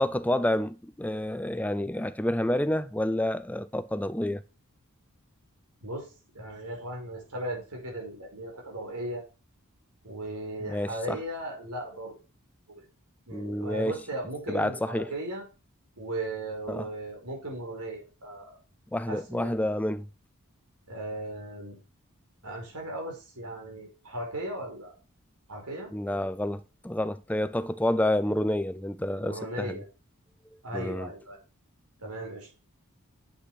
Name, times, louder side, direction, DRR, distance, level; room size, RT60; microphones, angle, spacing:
voice 1, 0.0-4.4 10.7-11.2 13.3-14.0 14.5-15.1 16.7-16.9 18.9-20.1 25.9-29.8 30.7-31.1, left 1 dB, 5° left, 0.5 m, -29 dB
voice 2, 6.3-9.2 10.0-12.1 12.7-12.8 13.3-15.4 16.0-18.6 19.1-19.5 20.9-21.8 22.4-24.9 25.5-25.9 29.2-29.9 30.6-31.4 32.0-32.5, right 1 dB, 90° right, 5.0 m, -37 dB
8.5 x 8.5 x 4.9 m
head